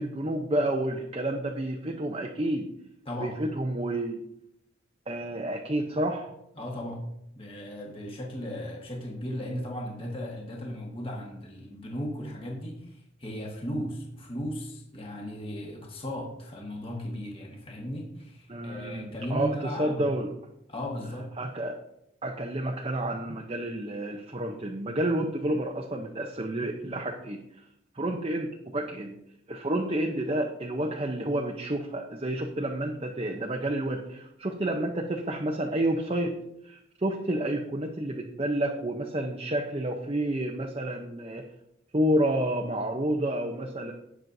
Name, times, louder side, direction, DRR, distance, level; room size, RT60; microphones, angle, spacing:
voice 1, 0.0-2.7 3.2-4.2 5.1-6.3 18.5-20.3 21.4-21.8 22.2-27.6 27.9-29.2 29.5-36.4 36.6-41.5 41.9-43.9, right 1 dB, 30° right, 2 dB, 0.7 m, -30 dB
voice 2, 6.6-7.1 7.3-20.1 20.7-21.3, equal, 30° left, -1 dB, 1.5 m, -36 dB
18.0 x 6.2 x 2.7 m, 0.79 s
head